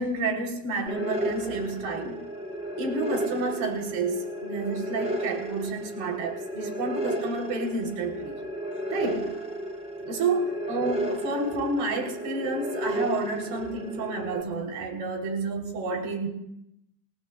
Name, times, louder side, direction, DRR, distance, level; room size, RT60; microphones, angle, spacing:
voice 1, 0.0-2.2 2.8-8.4 8.9-9.3 10.0-16.3, right 3 dB, 70° right, 2 dB, 3.4 m, -30 dB
sound 1, 0.9-14.4, right 1 dB, 10° right, 2.0 m, -33 dB
20.0 x 19.5 x 2.3 m, 0.81 s
supercardioid pair, 90°, 50 cm